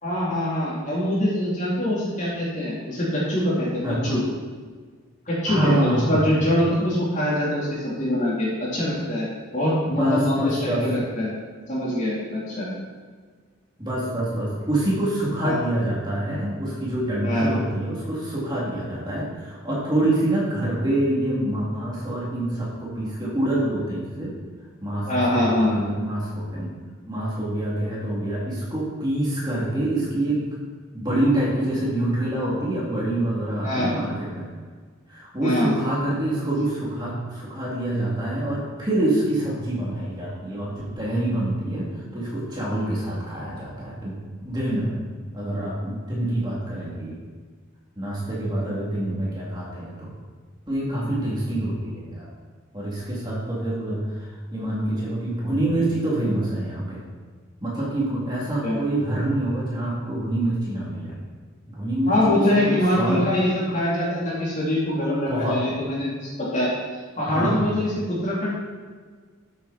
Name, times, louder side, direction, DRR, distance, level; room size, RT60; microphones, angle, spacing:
voice 1, 0.0-4.2 5.3-9.3 9.5-11.3 11.7-12.7 15.4-15.6 17.2-17.5 25.1-25.8 33.6-33.9 35.4-35.7 58.6-58.8 62.1-66.7 67.2-68.5, left 1 dB, 35° left, -7 dB, 3.9 m, -23 dB
voice 2, 3.8-4.1 5.5-6.3 9.9-10.9 13.8-24.3 24.8-26.7 27.1-30.5 30.9-34.5 35.1-41.9 42.1-44.2 44.4-45.0 45.3-47.2 48.0-50.1 50.7-52.3 52.7-57.0 57.6-61.1 61.7-63.2 65.3-65.6 67.3-67.6, right 1 dB, 20° right, -6 dB, 3.0 m, -26 dB
13.0 x 8.5 x 4.4 m, 1.5 s
head